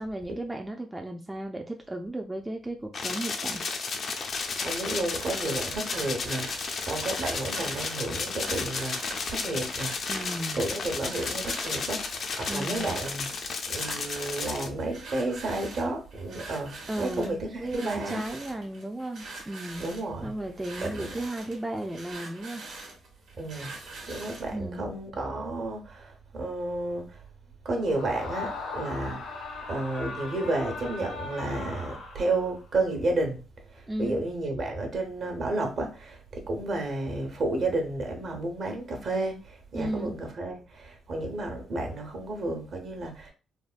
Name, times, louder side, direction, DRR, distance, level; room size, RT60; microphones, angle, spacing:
voice 1, 0.0-3.6 10.1-10.7 12.5-12.9 16.9-20.0 20.2-22.6 24.5-24.9 33.9-34.2 39.7-40.2, right 1 dB, 10° right, 0.4 m, -35 dB
sound 1, 2.9-14.7, left 4 dB, 55° left, 0.4 m, -33 dB
voice 2, 4.5-9.9 10.5-18.2 19.8-20.3 20.8-21.1 23.4-23.8 24.0-27.2 27.6-29.4 29.7-43.3, right 2 dB, 55° right, 0.9 m, -32 dB
sound 2, 5.2-24.5, right 3 dB, 80° right, 1.2 m, -44 dB
Screaming, 27.8-32.7, left 4 dB, 90° left, 1.2 m, -39 dB
3.4 x 2.2 x 2.4 m
cardioid pair, 90°, 0 cm